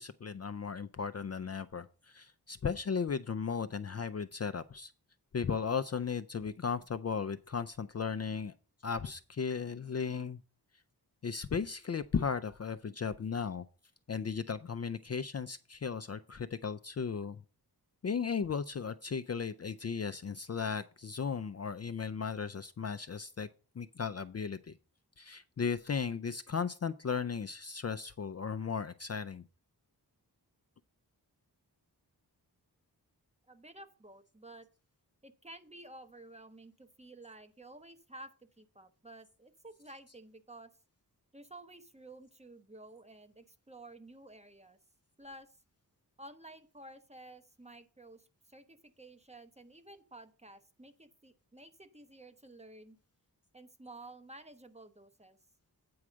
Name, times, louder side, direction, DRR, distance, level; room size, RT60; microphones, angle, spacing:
voice 1, 0.0-4.9 5.3-8.5 8.8-10.4 11.2-13.7 14.1-17.4 18.0-23.5 23.8-24.7 25.2-29.4, left 6 dB, 40° left, 0.5 m, -36 dB
voice 2, 33.5-34.7 35.2-40.7 41.3-44.8 45.2-45.5 46.2-53.0 53.5-55.4, right 2 dB, 15° right, 0.9 m, -52 dB
8.7 x 4.8 x 6.1 m
wide cardioid pair, 95°, 39 cm